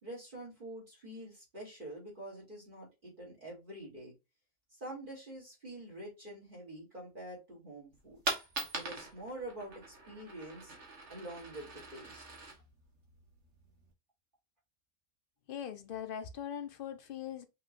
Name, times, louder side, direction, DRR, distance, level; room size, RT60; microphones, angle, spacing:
voice 1, 0.0-4.1 4.8-8.2 8.7-10.7 11.1-12.2, right 1 dB, 35° right, 2.7 m, -46 dB
Coin (dropping), 7.9-13.9, right 2 dB, 55° right, 1.6 m, -43 dB
voice 2, 15.5-17.5, left 9 dB, 55° left, 0.6 m, -41 dB
5.5 x 3.2 x 2.5 m
omnidirectional pair, 1.5 m